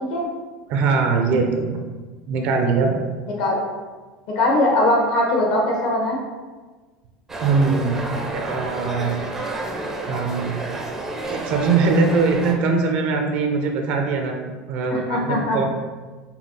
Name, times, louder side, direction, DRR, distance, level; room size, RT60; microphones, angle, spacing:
voice 1, 0.7-1.8 2.3-3.0 7.4-9.1 10.1-10.5 11.3-15.6, right 4 dB, 60° right, 3 dB, 0.6 m, -21 dB
voice 2, 4.3-6.2 14.9-15.6, left 1 dB, 70° left, -2 dB, 1.3 m, -20 dB
sound 1, 7.3-12.6, right 2 dB, 15° right, 0.5 m, -30 dB
5.5 x 2.3 x 2.9 m, 1.3 s
supercardioid pair, 120°, 2 cm